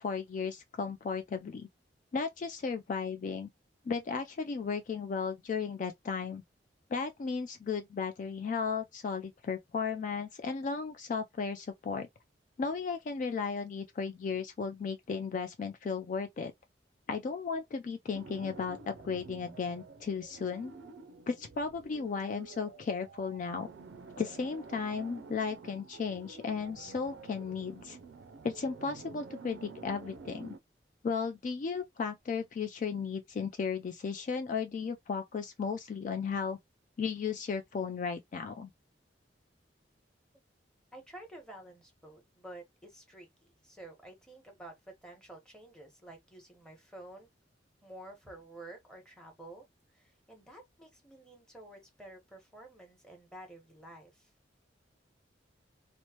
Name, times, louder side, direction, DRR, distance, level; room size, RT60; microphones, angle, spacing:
voice 1, 0.0-1.7 2.1-3.5 3.9-6.4 6.9-12.1 12.6-16.5 17.1-20.7 21.3-23.7 24.2-28.0 28.4-30.6 31.0-36.6 37.0-38.7, left 5 dB, 45° left, 0.3 m, -35 dB
sound 1, 18.1-30.6, right 4 dB, 75° right, 0.4 m, -50 dB
voice 2, 40.9-44.7 45.0-47.3 47.8-49.7 49.9-54.3, right 1 dB, 5° left, 1.0 m, -51 dB
3.0 x 2.0 x 2.8 m
head